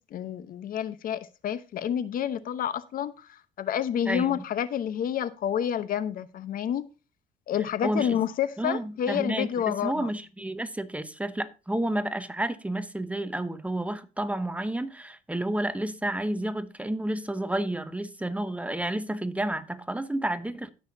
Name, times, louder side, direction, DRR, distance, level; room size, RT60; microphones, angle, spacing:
voice 1, 0.0-6.8 7.5-10.1, left 9 dB, 55° left, 0.9 m, -29 dB
voice 2, 4.1-4.4 7.8-8.2 8.6-20.7, right 1 dB, 10° right, 0.9 m, -30 dB
17.0 x 6.4 x 2.7 m
cardioid pair, 110°, 17 cm